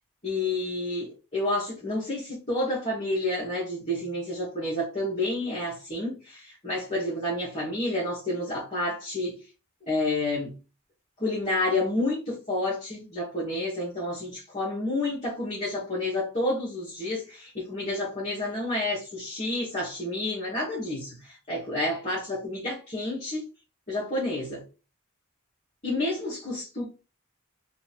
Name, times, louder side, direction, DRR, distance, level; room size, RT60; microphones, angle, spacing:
voice 1, 0.2-9.4 9.9-10.6 11.2-23.4 23.9-24.6 25.8-26.8, left 1 dB, 35° left, 1.4 m, -29 dB
3.0 x 2.7 x 4.2 m
head